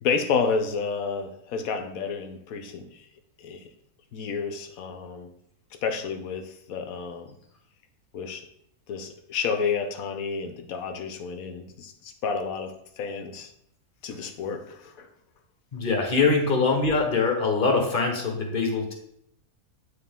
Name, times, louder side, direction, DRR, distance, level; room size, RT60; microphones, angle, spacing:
voice 1, 0.0-3.1 3.4-3.7 4.1-5.3 5.8-7.4 8.1-8.5 8.9-13.5 14.0-15.1, left 5 dB, 70° left, 6 dB, 1.1 m, -30 dB
voice 2, 15.7-18.9, left 4 dB, 35° left, 3 dB, 1.2 m, -23 dB
9.2 x 3.6 x 3.6 m, 0.73 s
omnidirectional pair, 1.6 m